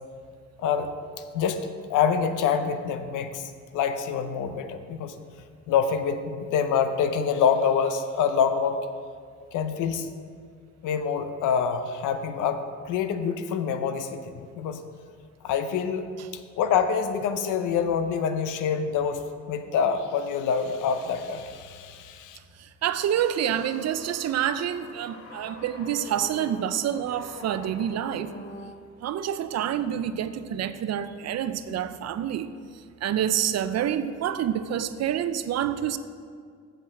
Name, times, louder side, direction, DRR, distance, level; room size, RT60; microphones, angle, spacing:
voice 1, 0.6-0.9 1.3-5.2 5.7-8.9 9.5-10.1 10.8-14.8 15.4-22.4, left 7 dB, 90° left, 9 dB, 0.7 m, -26 dB
voice 2, 22.6-28.3 29.0-32.5 33.0-36.0, right 10 dB, 60° right, 13 dB, 0.5 m, -27 dB
sound 1, 22.9-28.6, left 1 dB, 45° left, 2.3 m, -45 dB
7.4 x 5.4 x 7.3 m, 2.1 s
cardioid pair, 90°, 30 cm